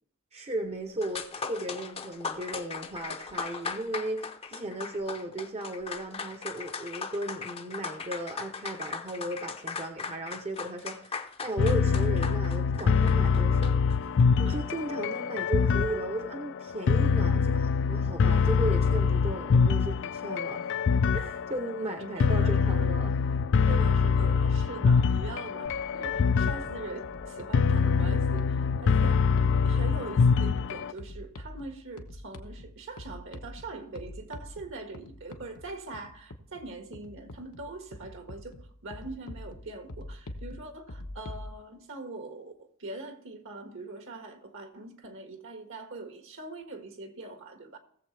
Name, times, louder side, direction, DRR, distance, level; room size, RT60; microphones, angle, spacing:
voice 1, 0.3-13.8 14.4-20.7 21.1-23.3, right 1 dB, 30° right, 0.8 m, -36 dB
sound 1, 0.7-0.8 1.0-14.0, left 5 dB, 25° left, 0.7 m, -38 dB
sound 2, 11.6-30.9, left 5 dB, 60° left, 0.4 m, -25 dB
voice 2, 22.1-22.9 23.7-25.7 25.9-47.8, right 3 dB, 65° right, 1.7 m, -42 dB
sound 3, 25.6-41.5, left 1 dB, 80° left, 1.1 m, -46 dB
18.0 x 7.4 x 3.3 m
head